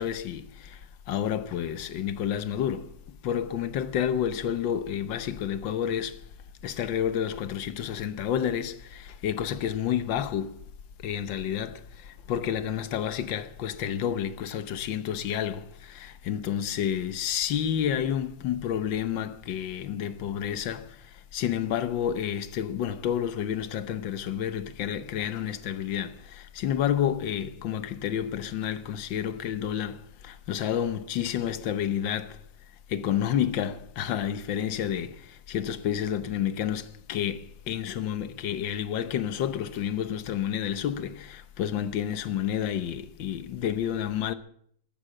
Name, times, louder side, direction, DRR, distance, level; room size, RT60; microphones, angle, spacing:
voice 1, 0.0-2.9 3.2-6.2 6.6-10.6 11.0-32.4 32.9-44.3, left 9 dB, 80° left, 1.7 m, -30 dB
14.5 x 10.0 x 8.6 m
omnidirectional pair, 2.0 m